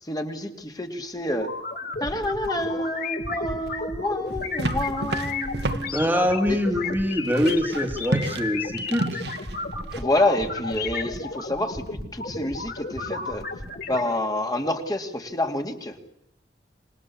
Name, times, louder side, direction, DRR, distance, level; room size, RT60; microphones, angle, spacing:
voice 1, 0.0-1.5 2.0-5.9 6.5-6.6 9.9-13.5 13.9-16.0, left 1 dB, 20° left, 4 dB, 2.7 m, -28 dB
sound 1, 1.4-14.0, left 3 dB, 60° left, 6.6 m, -33 dB
sound 2, 4.3-10.0, right 2 dB, 70° right, 1.9 m, -32 dB
voice 2, 5.9-9.1, equal, 10° right, 4 dB, 2.3 m, -24 dB
27.0 x 21.0 x 8.5 m, 0.78 s
head